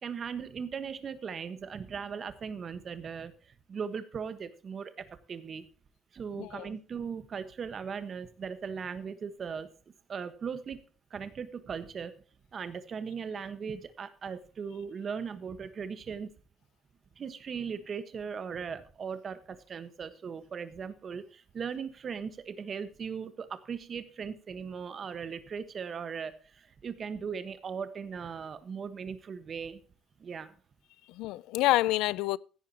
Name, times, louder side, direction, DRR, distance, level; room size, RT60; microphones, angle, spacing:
voice 1, 0.0-5.6 6.1-9.7 10.1-10.8 11.1-12.1 12.5-16.3 17.2-29.8 30.2-30.5, right 6 dB, 30° right, 1.3 m, -38 dB
voice 2, 6.4-6.8 31.1-32.4, left 17 dB, 90° left, 0.4 m, -28 dB
16.0 x 9.5 x 2.9 m
cardioid pair, 160°, 0 cm